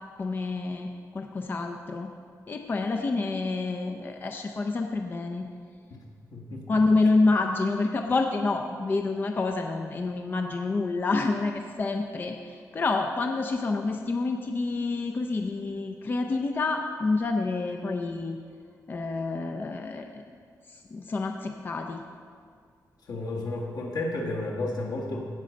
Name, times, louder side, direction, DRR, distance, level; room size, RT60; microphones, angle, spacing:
voice 1, 0.2-2.1 2.5-5.5 6.7-18.4 18.9-20.2 20.7-22.0, left 3 dB, 30° left, 4 dB, 0.5 m, -28 dB
voice 2, 6.3-6.6 23.1-25.2, left 2 dB, 80° left, -1 dB, 1.6 m, -32 dB
16.5 x 5.4 x 5.2 m, 2.1 s
wide cardioid pair, 175°, 7 cm